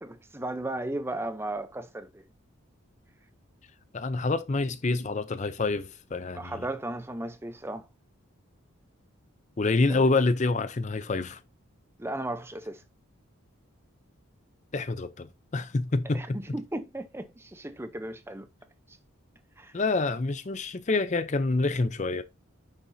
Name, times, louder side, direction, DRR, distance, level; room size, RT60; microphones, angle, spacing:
voice 1, 0.0-2.2 6.3-7.9 9.9-10.0 12.0-12.8 16.1-18.5 18.9-19.0 19.6-19.7, right 1 dB, 10° right, 0.6 m, -35 dB
voice 2, 3.9-6.5 9.6-11.4 14.7-16.4 19.7-22.2, left 3 dB, 35° left, 0.5 m, -27 dB
9.4 x 6.9 x 2.7 m
head